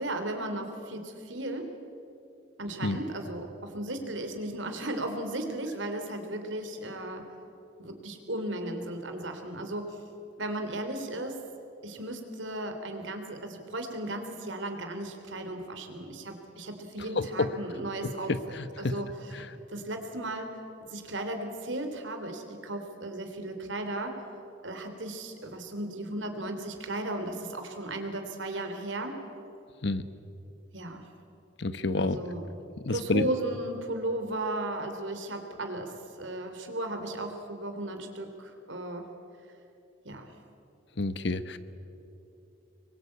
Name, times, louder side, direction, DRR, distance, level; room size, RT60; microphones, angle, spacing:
voice 1, 0.0-1.7 2.6-7.3 7.8-10.0 10.4-11.4 11.8-19.3 19.7-20.6 20.9-24.2 24.6-29.2 30.7-31.1 31.9-32.5 32.9-39.1 40.0-40.3, right 1 dB, 85° right, 5 dB, 3.3 m, -35 dB
voice 2, 17.1-17.5 18.0-18.9 19.3-19.5 29.8-30.0 31.6-32.2 32.8-33.3 41.0-41.6, left 2 dB, 65° left, 13 dB, 1.1 m, -29 dB
26.0 x 23.0 x 8.6 m, 2.8 s
head